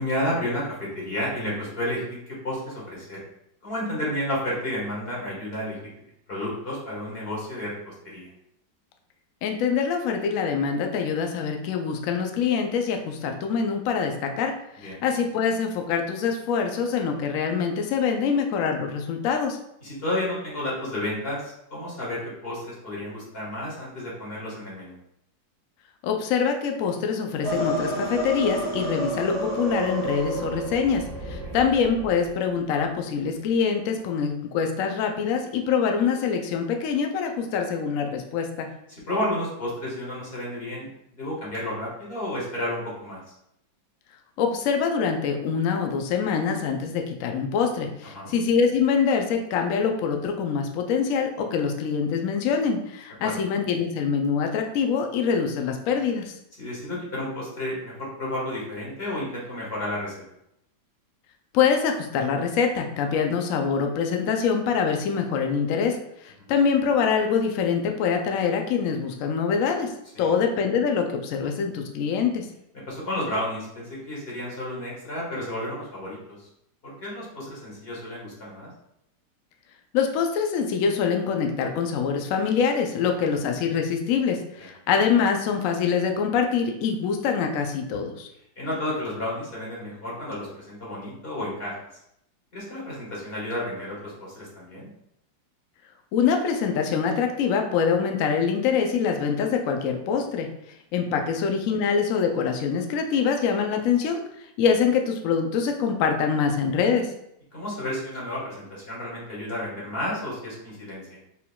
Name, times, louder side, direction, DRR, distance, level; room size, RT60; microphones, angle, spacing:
voice 1, 0.0-3.2 3.6-5.8 6.3-8.3 14.8-15.0 19.8-25.0 31.4-31.6 38.9-40.9 41.2-43.2 48.1-48.3 53.2-53.3 56.6-60.1 66.4-66.5 70.1-70.3 72.9-76.5 76.8-78.7 83.1-83.3 88.6-91.7 92.5-94.9 107.5-111.2, left 1 dB, 35° left, -5 dB, 1.5 m, -31 dB
voice 2, 9.4-14.5 14.8-19.6 26.0-38.7 44.4-56.3 61.5-66.0 66.2-69.9 70.2-72.5 79.9-88.3 96.1-100.5 100.9-104.2 104.6-107.1, left 6 dB, 80° left, 4 dB, 0.7 m, -24 dB
sound 1, 27.4-32.3, right 1 dB, 10° right, 1.3 m, -30 dB
4.4 x 3.7 x 2.3 m, 0.77 s
omnidirectional pair, 2.0 m